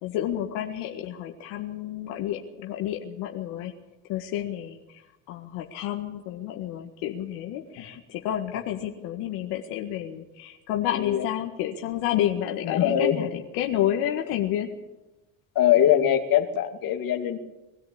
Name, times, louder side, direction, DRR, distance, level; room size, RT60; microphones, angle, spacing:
voice 1, 0.0-3.7 4.1-4.8 5.3-14.7, left 11 dB, 85° left, 2 dB, 1.9 m, -30 dB
voice 2, 10.9-11.3 12.6-13.3 15.5-17.4, left 10 dB, 60° left, 5 dB, 2.6 m, -22 dB
22.5 x 13.5 x 8.8 m, 1.0 s
cardioid pair, 105°, 38 cm